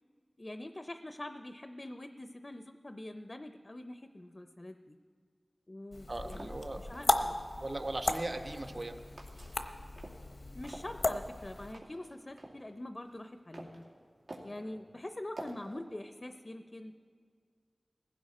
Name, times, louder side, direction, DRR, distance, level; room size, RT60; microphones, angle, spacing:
voice 1, 0.4-5.0 5.7-6.5 6.8-7.4 10.5-13.9 14.4-16.9, left 1 dB, 40° left, 8 dB, 0.6 m, -44 dB
sound 1, 5.9-11.7, left 2 dB, 75° left, 0.9 m, -36 dB
sound 2, 6.0-7.1 7.9-8.8 9.2-10.3 10.6-12.6 13.1-13.8 14.3-14.6 15.4-15.8, right 2 dB, 85° right, 2.4 m, -49 dB
voice 2, 6.1-6.8 7.1-7.3 7.6-8.9 14.9-15.0, right 2 dB, 55° right, 5 dB, 1.3 m, -38 dB
19.0 x 15.5 x 4.2 m, 2.1 s
wide cardioid pair, 40°, 0 cm